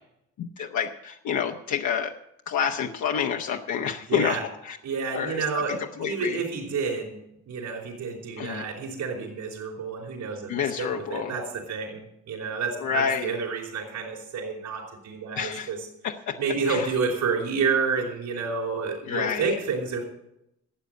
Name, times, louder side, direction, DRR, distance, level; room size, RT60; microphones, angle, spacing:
voice 1, 0.4-2.2 2.5-4.4 4.6-4.8 5.1-6.4 8.4-8.7 10.5-11.3 12.8-13.3 15.4-15.7 16.0-16.4 16.7-16.9 19.1-19.5, left 7 dB, 70° left, 2 dB, 1.0 m, -28 dB
voice 2, 4.1-4.4 4.8-7.2 7.5-10.5 10.8-15.9 16.4-20.0, right 5 dB, 70° right, -1 dB, 4.4 m, -29 dB
13.0 x 8.2 x 7.9 m, 0.80 s
cardioid pair, 90°, 30 cm